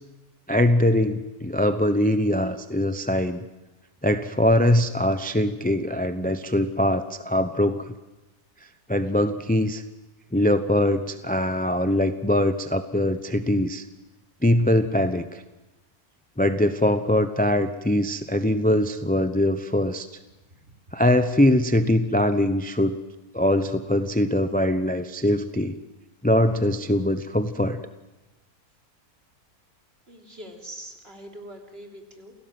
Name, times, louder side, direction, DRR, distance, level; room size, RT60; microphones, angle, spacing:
voice 1, 0.5-3.4 4.0-7.9 8.9-9.8 10.3-13.8 14.4-15.4 16.4-20.1 20.9-23.0 23.3-25.8 26.2-27.8, left 1 dB, 10° left, 10 dB, 0.5 m, -22 dB
voice 2, 30.1-32.3, right 1 dB, 40° right, 2 dB, 3.5 m, -42 dB
28.5 x 17.0 x 7.8 m, 1.1 s
omnidirectional pair, 1.6 m